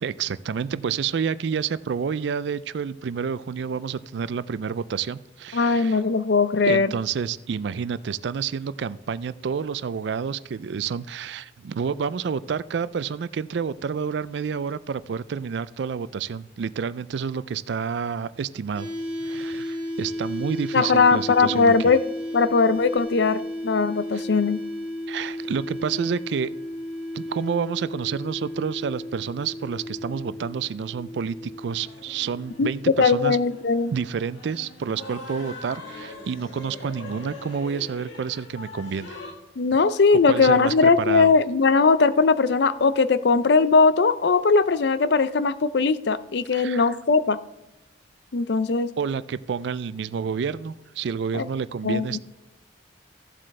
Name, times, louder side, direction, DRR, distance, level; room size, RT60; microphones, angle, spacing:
voice 1, 0.0-6.0 6.6-18.9 19.2-21.7 24.1-24.2 25.1-26.5 27.1-33.4 33.9-39.2 40.3-41.3 46.5-46.9 49.0-52.2, right 6 dB, 65° right, 17 dB, 0.3 m, -29 dB
voice 2, 5.5-6.9 20.7-22.0 22.3-24.6 32.6-33.9 39.6-47.4 48.3-48.9 51.3-51.5 51.8-52.2, left 4 dB, 60° left, 15 dB, 0.5 m, -20 dB
sound 1, 18.7-32.7, left 1 dB, 10° right, 1.9 m, -34 dB
sound 2, 31.5-39.3, left 2 dB, 80° left, 1.8 m, -42 dB
15.0 x 7.5 x 3.2 m, 0.99 s
head